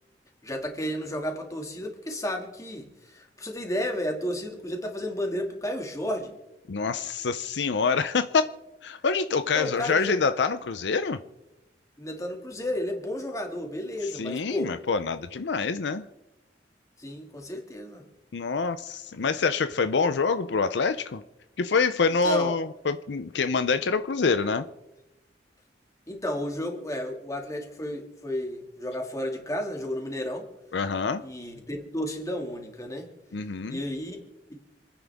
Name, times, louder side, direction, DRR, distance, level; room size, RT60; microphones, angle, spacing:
voice 1, 0.4-6.4 9.5-10.1 12.0-14.7 17.0-18.0 19.2-19.3 22.2-22.6 26.1-30.5 31.2-33.1 33.7-34.2 34.5-34.6, left 1 dB, 20° left, 2 dB, 2.1 m, -32 dB
voice 2, 6.7-8.5 8.8-11.2 14.1-16.1 18.3-21.2 21.6-24.6 30.7-31.2 33.3-33.8, left 4 dB, 75° left, 11 dB, 0.6 m, -26 dB
27.5 x 9.8 x 3.5 m, 0.96 s
head